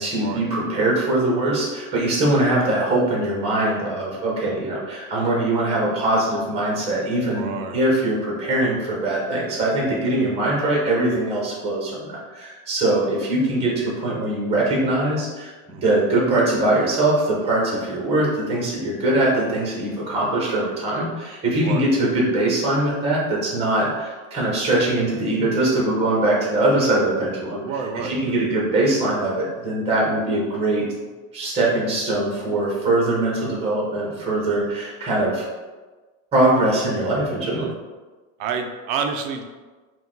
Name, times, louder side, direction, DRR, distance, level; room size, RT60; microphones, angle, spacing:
voice 1, 0.0-27.6 28.0-30.9 31.3-35.4 36.3-37.7, right 1 dB, 15° right, -3 dB, 1.1 m, -22 dB
voice 2, 7.3-7.8 15.7-16.0 21.6-21.8 27.5-28.6 37.5-37.8 38.4-39.4, right 6 dB, 45° right, 5 dB, 0.4 m, -29 dB
4.4 x 2.4 x 3.8 m, 1.3 s
supercardioid pair, 160°, 39 cm